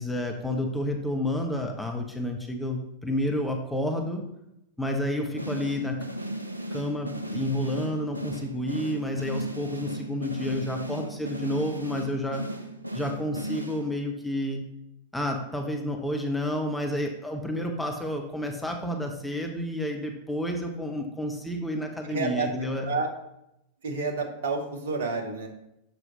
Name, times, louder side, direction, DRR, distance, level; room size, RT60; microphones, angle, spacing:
voice 1, 0.0-4.2 4.8-6.0 6.7-12.4 12.9-14.6 15.1-22.9, left 1 dB, 5° left, 2 dB, 1.0 m, -30 dB
sound 1, 5.4-14.2, right 1 dB, 85° right, 0.5 m, -36 dB
voice 2, 22.0-22.5 22.8-23.1 23.8-25.5, right 4 dB, 60° right, 3 dB, 1.3 m, -29 dB
7.1 x 6.2 x 3.9 m, 0.83 s
figure-of-eight pair, 90°, 0 cm